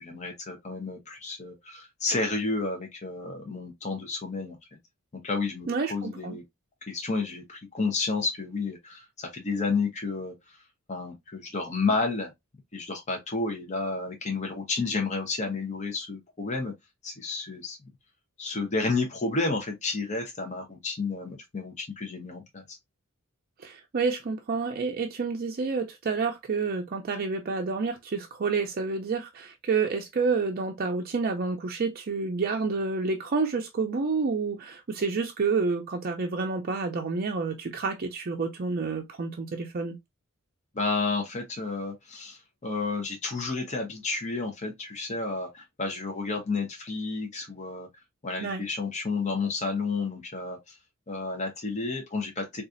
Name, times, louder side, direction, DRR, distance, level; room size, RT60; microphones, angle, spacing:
voice 1, 0.0-4.6 5.2-6.4 6.9-10.6 10.9-12.3 12.7-16.7 17.0-17.8 18.4-22.8 40.7-47.9 48.2-50.8 51.1-52.6, left 3 dB, 35° left, 0.7 m, -31 dB
voice 2, 5.7-6.4 23.6-40.0 48.4-48.6, right 4 dB, 45° right, 0.4 m, -29 dB
3.9 x 2.4 x 2.5 m
head